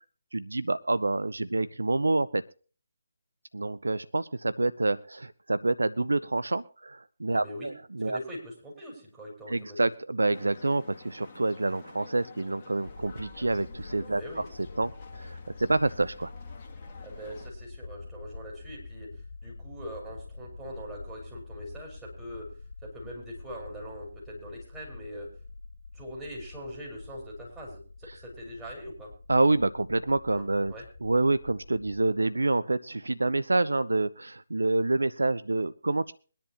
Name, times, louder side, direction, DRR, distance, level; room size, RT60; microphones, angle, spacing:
voice 1, 0.3-2.4 3.5-8.2 9.5-14.4 14.8-16.3 29.3-30.7 31.0-36.1, right 2 dB, 75° right, 15 dB, 0.5 m, -27 dB
voice 2, 7.3-7.7 8.0-9.8 14.1-14.4 17.0-19.1 19.4-22.5 22.8-25.3 25.9-29.1 30.3-30.8, equal, 10° right, -5 dB, 5.0 m, -42 dB
sound 1, 10.3-17.5, left 4 dB, 30° left, 2.0 m, -51 dB
sound 2, 12.9-32.1, left 3 dB, 70° left, 0.9 m, -46 dB
23.0 x 10.5 x 2.9 m, 0.38 s
figure-of-eight pair, 150°, 0 cm